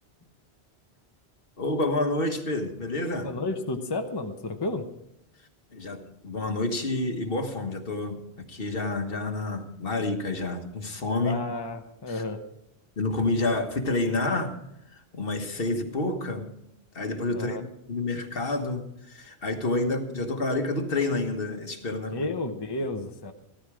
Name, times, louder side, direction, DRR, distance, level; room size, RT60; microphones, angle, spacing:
voice 1, 1.6-3.3 5.7-11.4 12.1-12.2 13.0-14.6 14.9-16.5 16.9-22.3, left 2 dB, 55° left, 5 dB, 1.6 m, -29 dB
voice 2, 3.2-4.9 11.2-12.4 17.3-17.6 22.1-23.3, left 2 dB, 25° left, 4 dB, 0.9 m, -32 dB
15.0 x 13.5 x 4.9 m, 0.81 s
omnidirectional pair, 1.1 m